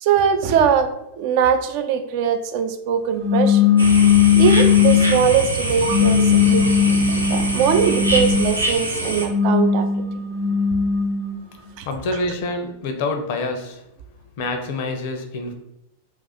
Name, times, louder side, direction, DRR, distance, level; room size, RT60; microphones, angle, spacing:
voice 1, 0.0-3.7 4.4-9.9 11.8-11.9, right 7 dB, 45° right, 8 dB, 0.3 m, -21 dB
sound 1, 3.2-5.2 5.8-8.5 9.1-11.4, left 7 dB, 30° right, 1.0 m, -18 dB
sound 2, 3.8-9.3, right 1 dB, 85° right, 0.6 m, -24 dB
voice 2, 11.8-13.8 14.4-15.5, left 2 dB, 50° left, 5 dB, 0.5 m, -26 dB
2.5 x 2.4 x 4.0 m, 0.85 s
figure-of-eight pair, 90°, 0 cm